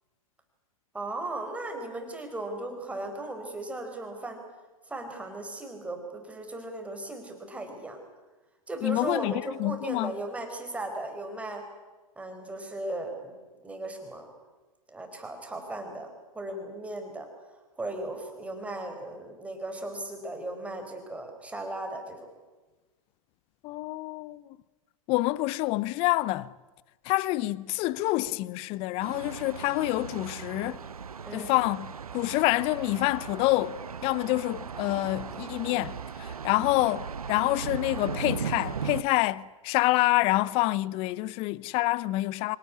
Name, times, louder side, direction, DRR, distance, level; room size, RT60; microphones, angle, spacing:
voice 1, 0.9-4.4 4.9-8.0 8.7-11.6 12.2-13.4 13.6-14.3 14.9-16.1 16.3-17.3 17.8-22.2 31.2-31.5, right 2 dB, 5° right, 4.7 m, -37 dB
voice 2, 8.8-10.1 23.6-24.4 25.1-26.5 27.0-30.8 31.3-42.6, left 19 dB, 30° left, 0.7 m, -27 dB
Thunder, 29.0-39.0, right 6 dB, 85° right, 1.1 m, -37 dB
25.0 x 18.0 x 9.7 m
hypercardioid pair, 125°, 18 cm